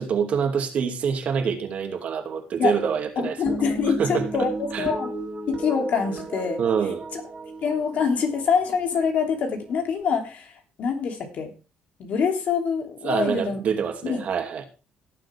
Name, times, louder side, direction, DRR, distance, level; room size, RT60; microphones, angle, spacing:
voice 1, 0.0-3.4 4.0-4.3 4.7-4.9 6.6-7.0 13.0-14.6, right 7 dB, 55° right, 2.5 m, -25 dB
voice 2, 3.2-5.1 5.5-6.6 7.1-7.2 7.6-10.5 10.8-11.5 12.0-13.6 14.0-14.3, left 6 dB, 60° left, 3.0 m, -25 dB
sound 1, 3.5-10.0, right 3 dB, 35° right, 3.3 m, -36 dB
17.0 x 7.6 x 3.5 m
cardioid pair, 120°, 3 cm